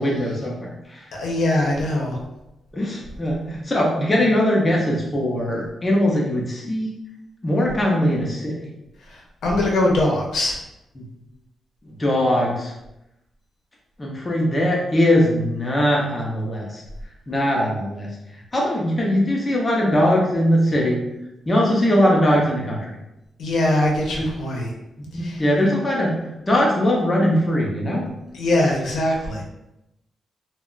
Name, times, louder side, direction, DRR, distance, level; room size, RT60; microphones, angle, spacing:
voice 1, 0.0-1.0 2.7-6.9 7.4-8.6 11.0-11.1 12.0-12.7 14.0-16.8 17.3-18.1 18.5-21.0 21.5-22.9 24.2-24.3 25.1-26.1 26.5-28.0, equal, 20° left, -3 dB, 0.5 m, -20 dB
voice 2, 1.2-2.2 9.1-10.6 23.4-24.7 25.2-25.4 28.3-29.4, left 1 dB, 80° left, -2 dB, 0.7 m, -22 dB
2.3 x 2.1 x 3.7 m, 0.90 s
wide cardioid pair, 145°, 0 cm